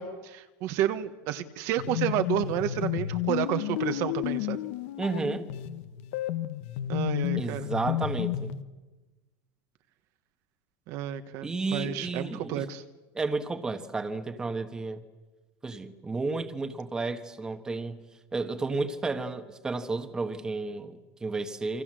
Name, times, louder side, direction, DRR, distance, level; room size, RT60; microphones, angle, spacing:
voice 1, 0.0-4.6 6.9-7.7 10.9-12.8, right 11 dB, 40° right, 1.3 m, -31 dB
sound 1, 1.8-8.6, left 13 dB, 60° left, 1.3 m, -32 dB
voice 2, 5.0-5.4 7.3-8.5 11.4-12.6 13.1-15.0 15.6-18.0 18.3-21.8, right 3 dB, 10° right, 1.4 m, -32 dB
29.0 x 25.5 x 7.7 m
supercardioid pair, 180°, 8 cm